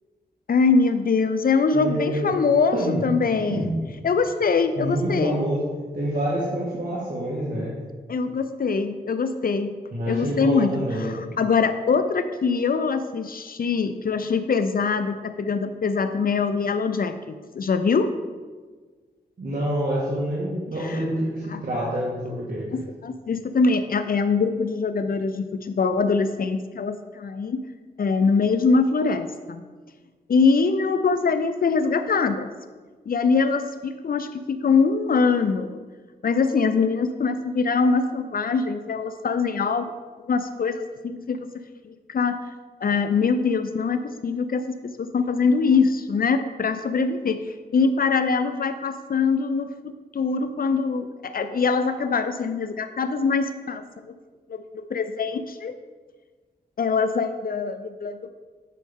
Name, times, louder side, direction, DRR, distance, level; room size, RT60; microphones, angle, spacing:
voice 1, 0.5-3.7 4.0-5.4 8.1-9.8 10.1-18.1 20.8-21.0 21.5-21.6 22.7-27.6 28.0-29.6 30.3-32.5 33.1-35.8 36.2-39.9 40.3-42.4 42.8-47.4 47.7-54.1 54.5-54.6 54.9-55.7 56.8-58.3, left 4 dB, 60° left, 10 dB, 0.5 m, -23 dB
voice 2, 1.7-2.4 2.7-3.0 3.5-3.7 4.8-5.6 5.9-7.7 9.9-11.2 19.4-22.7, right 1 dB, 55° right, -7 dB, 1.8 m, -27 dB
9.1 x 5.6 x 3.6 m, 1.4 s
cardioid pair, 55°, 17 cm